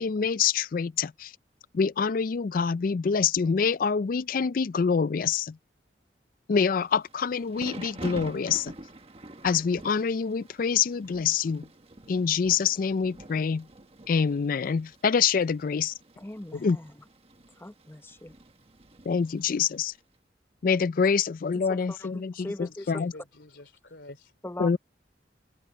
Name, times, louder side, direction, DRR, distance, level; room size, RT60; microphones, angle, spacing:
voice 1, 0.0-1.3 1.7-5.6 6.5-8.7 9.4-11.7 12.1-13.7 14.1-15.9 16.5-16.8 19.1-19.9 20.6-23.1 24.6-24.8, left 6 dB, 50° left, 0.4 m, -26 dB
Thunder / Rain, 6.8-19.9, right 2 dB, 35° right, 1.4 m, -47 dB
voice 2, 16.2-16.9 17.6-18.3 21.7-22.1 22.4-22.9 24.4-24.8, left 1 dB, 15° left, 0.8 m, -39 dB
voice 3, 22.4-24.3, left 2 dB, 85° left, 3.2 m, -48 dB
head